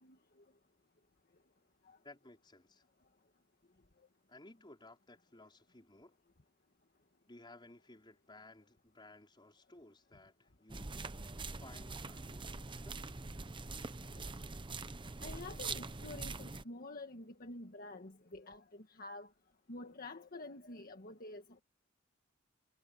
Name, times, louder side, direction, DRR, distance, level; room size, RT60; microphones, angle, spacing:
voice 1, 2.0-2.8 4.3-6.1 7.3-11.2 11.5-13.0, left 2 dB, 25° left, 4.7 m, -58 dB
sound 1, 10.7-16.6, right 3 dB, 25° right, 0.8 m, -44 dB
voice 2, 15.2-19.3 19.7-21.6, left 2 dB, 45° left, 1.6 m, -48 dB
head